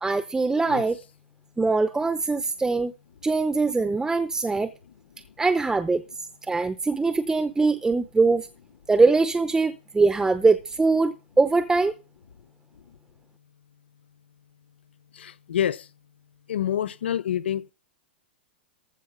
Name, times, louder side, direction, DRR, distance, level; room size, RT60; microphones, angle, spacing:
voice 1, 0.0-1.0 1.6-2.9 3.2-4.7 5.4-6.0 6.5-8.5 8.9-11.9, right 3 dB, 10° right, 0.7 m, -22 dB
voice 2, 15.1-15.9 16.5-17.7, left 10 dB, 80° left, 0.6 m, -27 dB
14.5 x 5.4 x 5.7 m
hypercardioid pair, 110°, 6 cm